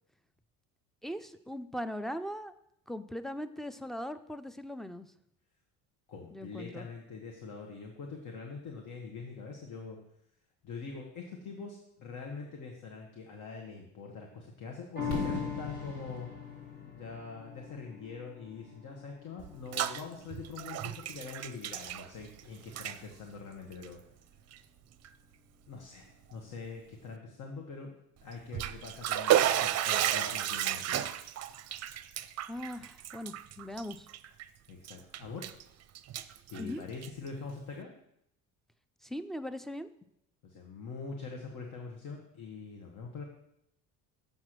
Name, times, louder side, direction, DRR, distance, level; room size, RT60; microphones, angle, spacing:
voice 1, 1.0-2.5 2.9-5.1 6.3-6.9 32.5-34.1 36.6-36.8 39.0-39.9, equal, ahead, 12 dB, 0.5 m, -39 dB
voice 2, 6.1-10.0 10.6-16.3 16.9-24.0 25.7-27.9 28.2-31.1 34.7-35.5 36.5-37.9 40.4-43.2, left 4 dB, 55° left, 1 dB, 1.5 m, -44 dB
sound 1, 15.0-21.6 22.1-22.2, left 6 dB, 25° left, 1.5 m, -42 dB
Fireworks, 15.1-19.0, left 2 dB, 70° left, 3.7 m, -42 dB
Bathtub (filling or washing), 19.4-20.0 20.3-22.4 22.7-23.0 23.7-23.9 24.5-24.6 25.0-25.1 28.3-34.4 34.8-35.6 35.9-37.3, right 11 dB, 45° right, 0.6 m, -32 dB
7.4 x 4.9 x 6.1 m, 0.76 s
supercardioid pair, 85°, 37 cm